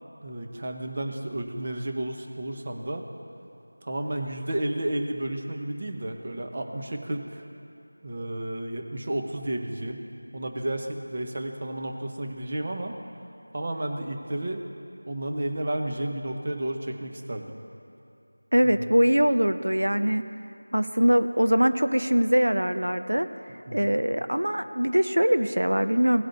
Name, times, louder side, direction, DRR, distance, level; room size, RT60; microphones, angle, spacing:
voice 1, 0.2-3.1 3.8-7.4 8.0-10.0 10.3-13.0 13.5-14.6 15.1-17.5 18.6-18.9 23.7-23.9, right 1 dB, 35° right, 3 dB, 0.9 m, -32 dB
voice 2, 18.5-20.2 20.7-23.3 23.7-26.2, equal, 90° right, 9 dB, 0.6 m, -22 dB
18.0 x 8.0 x 2.7 m, 2.6 s
figure-of-eight pair, 175°, 0 cm